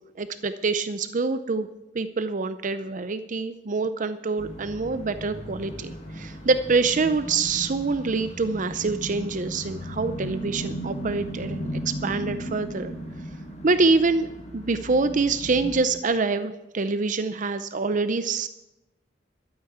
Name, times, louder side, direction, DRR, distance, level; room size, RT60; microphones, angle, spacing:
voice 1, 0.2-1.7 1.9-12.9 13.6-14.3 14.5-18.5, right 3 dB, 40° right, 11 dB, 0.6 m, -25 dB
sound 1, 4.4-15.8, right 1 dB, 35° left, 2.0 m, -36 dB
13.0 x 8.9 x 8.0 m, 0.94 s
head